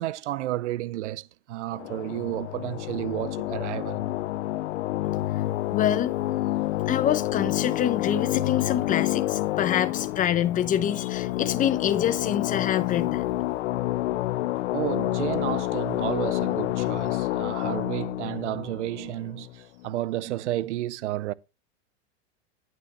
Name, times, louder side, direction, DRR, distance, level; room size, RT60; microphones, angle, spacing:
voice 1, 0.0-4.1 14.7-21.3, right 14 dB, 85° right, 0.6 m, -32 dB
sound 1, 1.7-19.9, left 16 dB, 85° left, 0.5 m, -28 dB
voice 2, 5.7-6.1 6.9-13.2, left 10 dB, 25° left, 0.8 m, -26 dB
9.0 x 8.9 x 3.1 m
hypercardioid pair, 115°, 34 cm